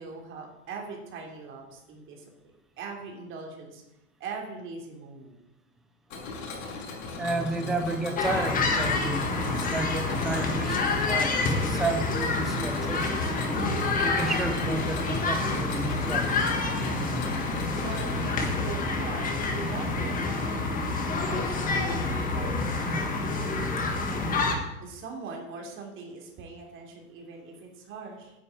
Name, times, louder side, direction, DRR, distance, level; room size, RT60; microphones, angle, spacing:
voice 1, 0.0-2.2 2.8-3.8 4.2-5.3 17.7-20.6 21.2-23.3 24.8-28.3, right 4 dB, 30° right, 1 dB, 3.3 m, -41 dB
Mechanisms, 6.1-18.3, left 3 dB, 60° left, 5.4 m, -39 dB
voice 2, 7.2-13.3 14.0-16.3, right 2 dB, ahead, 6 dB, 0.4 m, -32 dB
sound 1, 8.2-24.5, left 3 dB, 20° left, 1.8 m, -28 dB
10.0 x 7.0 x 8.5 m, 0.95 s
hypercardioid pair, 140°, 42 cm